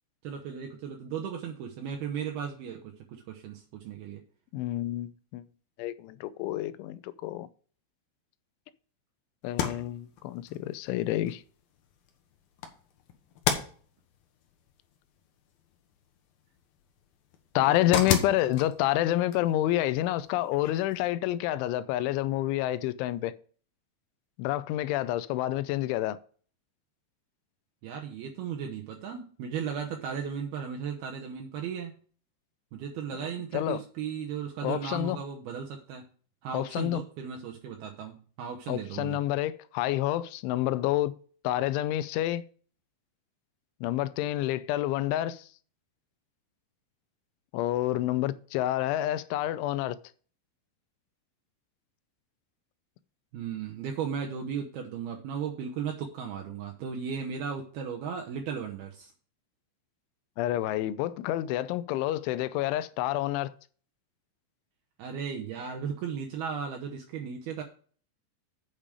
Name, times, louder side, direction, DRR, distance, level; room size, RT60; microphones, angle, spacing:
voice 1, 0.2-4.2 18.0-18.7 27.8-31.9 32.7-36.1 36.4-39.2 53.3-59.1 65.0-67.6, right 7 dB, 75° right, 2.4 m, -36 dB
voice 2, 4.5-5.4 5.8-7.5 9.4-11.4 17.6-23.3 24.4-26.2 33.5-33.8 34.6-35.2 36.5-37.0 38.7-41.2 41.4-42.5 43.8-45.5 47.5-50.0 60.4-63.5, left 14 dB, 85° left, 3.0 m, -28 dB
sound 1, 9.4-21.1, left 8 dB, 65° left, 2.6 m, -37 dB
8.9 x 6.6 x 4.9 m
omnidirectional pair, 5.4 m